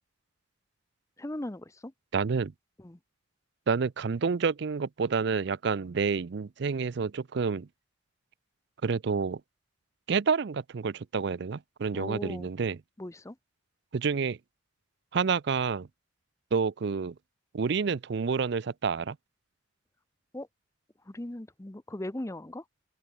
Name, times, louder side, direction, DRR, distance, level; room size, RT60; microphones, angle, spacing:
voice 1, 1.2-1.9 2.8-3.0 11.9-12.5 13.0-13.4 20.3-20.5 21.1-22.6, left 1 dB, 15° left, 0.6 m, -38 dB
voice 2, 2.1-2.5 3.7-7.7 8.8-9.4 10.1-12.8 13.9-14.4 15.1-15.9 16.5-17.1 17.5-19.2, right 5 dB, 55° right, 0.4 m, -29 dB
open air
head